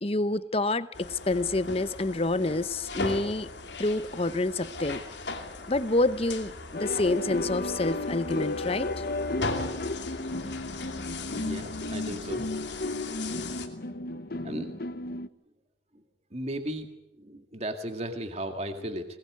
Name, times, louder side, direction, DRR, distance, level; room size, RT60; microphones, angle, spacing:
voice 1, 0.0-3.5 3.8-5.0 5.7-9.0, left 2 dB, 30° left, 0.9 m, -28 dB
sound 1, 0.9-13.7, left 3 dB, 70° left, 2.7 m, -38 dB
sound 2, 6.7-15.3, left 2 dB, 55° left, 1.0 m, -34 dB
voice 2, 11.3-12.4 14.4-14.7 16.3-16.9 17.2-19.1, right 1 dB, 35° right, 2.1 m, -35 dB
21.0 x 21.0 x 9.5 m
head